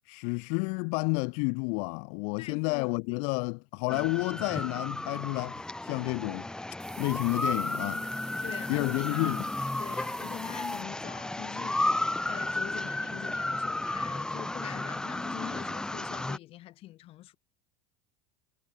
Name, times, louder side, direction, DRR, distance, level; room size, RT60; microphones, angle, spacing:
voice 1, 0.1-6.5 7.0-8.0 8.7-9.4, left 40 dB or more, 70° left, 1.0 m, -30 dB
voice 2, 2.4-2.9 8.4-9.3 9.8-17.4, left 15 dB, 55° left, 6.1 m, -44 dB
sound 1, 3.9-16.4, left 2 dB, 5° left, 0.6 m, -33 dB
sound 2, 6.8-10.8, right 22 dB, 60° right, 3.1 m, -50 dB
supercardioid pair, 100°, 12 cm